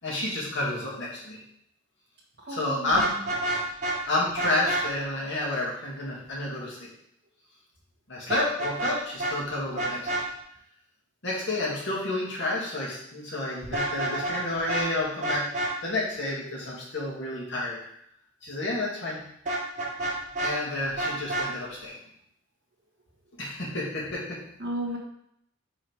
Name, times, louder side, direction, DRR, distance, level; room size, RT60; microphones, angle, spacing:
voice 1, 0.0-1.4 2.5-3.1 4.1-6.9 8.1-10.2 11.2-15.4 15.8-17.8 18.4-19.2 20.4-22.0 23.4-24.2, left 2 dB, 60° left, -5 dB, 2.2 m, -30 dB
voice 2, 2.4-3.2 24.6-25.0, right 1 dB, 55° right, -1 dB, 1.3 m, -34 dB
Vehicle horn car horn honking, 2.9-4.0 4.4-4.8 8.3-8.9 9.2-9.3 9.8-10.2 13.6-14.4 14.7-14.9 15.2-15.7 19.5-20.5 21.0-21.5, right 2 dB, 35° right, 1.6 m, -28 dB
5.5 x 4.7 x 4.7 m, 0.73 s
head